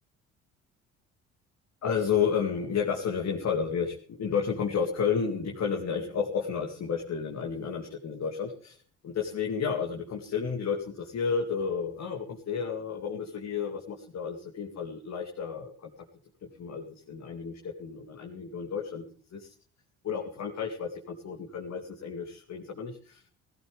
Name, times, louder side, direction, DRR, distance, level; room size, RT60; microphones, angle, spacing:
voice 1, 1.8-15.9 16.4-19.1 19.3-19.5 20.0-23.2, left 6 dB, 45° left, 1 dB, 2.6 m, -31 dB
19.0 x 15.5 x 3.5 m, 0.43 s
hypercardioid pair, 55°, 36 cm